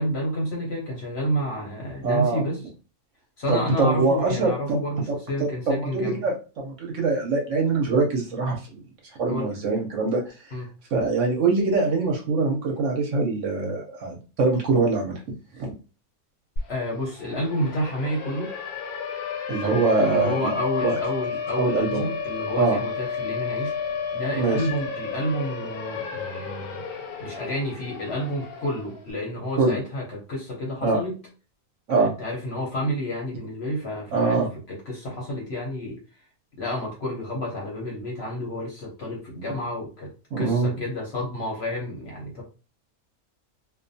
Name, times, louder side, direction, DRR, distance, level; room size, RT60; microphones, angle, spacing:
voice 1, 0.0-2.6 3.4-6.2 9.3-9.5 10.5-10.7 16.7-18.5 20.0-23.8 24.1-26.8 27.2-31.2 32.0-34.4 34.7-36.0 36.6-42.4, equal, 55° left, -2 dB, 0.8 m, -30 dB
voice 2, 2.0-2.4 3.5-4.8 5.1-8.6 9.2-10.5 10.9-15.2 15.6-15.7 19.5-20.5 20.8-21.0 21.6-22.1 22.5-22.8 24.4-24.6 29.6-29.8 30.8-31.0 31.9-32.1 34.1-34.5 40.3-40.7, right 3 dB, 65° right, 1 dB, 0.9 m, -23 dB
Siren, 16.6-16.7 17.0-29.0, left 6 dB, 80° left, 1.1 m, -32 dB
2.4 x 2.2 x 2.6 m, 0.34 s
omnidirectional pair, 1.6 m